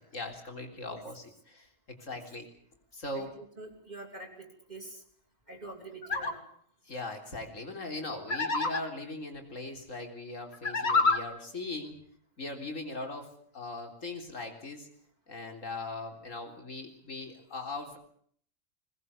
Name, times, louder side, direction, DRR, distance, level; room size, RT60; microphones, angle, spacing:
voice 1, 0.1-1.7 2.0-2.5 2.9-3.3 6.8-12.0 12.4-14.9 15.3-18.0, left 2 dB, 90° left, 4 dB, 4.0 m, -40 dB
voice 2, 3.1-5.0 5.5-6.4, right 2 dB, 35° right, -1 dB, 3.8 m, -46 dB
sound 1, 6.0-6.3 8.3-8.8 10.5-11.2, left 3 dB, 55° left, 2.3 m, -27 dB
21.5 x 19.5 x 8.4 m, 0.63 s
omnidirectional pair, 1.3 m